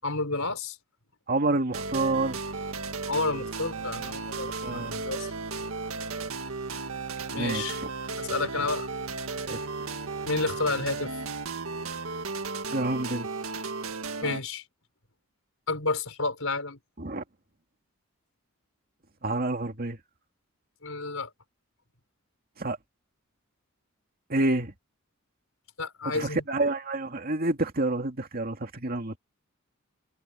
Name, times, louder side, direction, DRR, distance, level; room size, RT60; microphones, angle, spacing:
voice 1, 0.0-0.8 3.1-5.3 7.3-7.8 8.2-8.9 10.2-11.2 14.2-14.6 15.7-16.8 20.8-21.3 25.8-26.4, left 3 dB, 75° left, 4.8 m, -30 dB
voice 2, 1.3-2.4 4.6-5.0 7.3-7.9 9.5-9.7 12.7-13.3 17.0-17.2 19.2-20.0 22.6-22.8 24.3-24.7 26.0-29.2, right 2 dB, 45° right, 2.2 m, -28 dB
sound 1, 1.7-14.4, right 4 dB, 80° right, 1.9 m, -35 dB
head